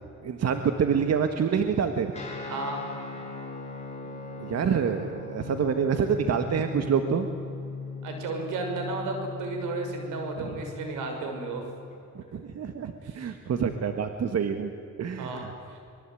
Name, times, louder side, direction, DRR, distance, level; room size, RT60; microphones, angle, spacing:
voice 1, 0.2-2.1 4.4-7.3 10.4-10.5 12.2-14.7 15.0-15.5, right 7 dB, 55° right, 7 dB, 1.8 m, -27 dB
Guitar, 2.1-12.0, left 4 dB, 20° left, 6.7 m, -39 dB
voice 2, 2.5-2.8 8.0-11.7 13.0-13.3 15.2-15.8, right 3 dB, 90° right, 4 dB, 6.1 m, -33 dB
24.5 x 22.5 x 9.3 m, 2.7 s
cardioid pair, 90°, 30 cm